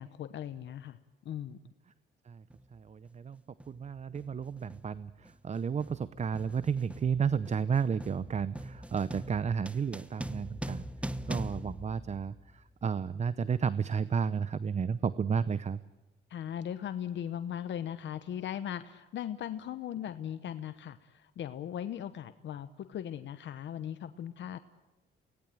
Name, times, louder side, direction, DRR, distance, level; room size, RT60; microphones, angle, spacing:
voice 1, 0.0-1.6 16.3-24.6, left 10 dB, 65° left, 11 dB, 1.0 m, -38 dB
sound 1, 2.5-2.7 3.6-3.9 4.2-12.7, right 1 dB, 5° right, 1.1 m, -42 dB
voice 2, 2.7-3.4 3.7-10.9 11.3-15.8, right 6 dB, 35° right, 16 dB, 0.7 m, -32 dB
24.0 x 18.5 x 9.1 m, 1.1 s
cardioid pair, 90°, 20 cm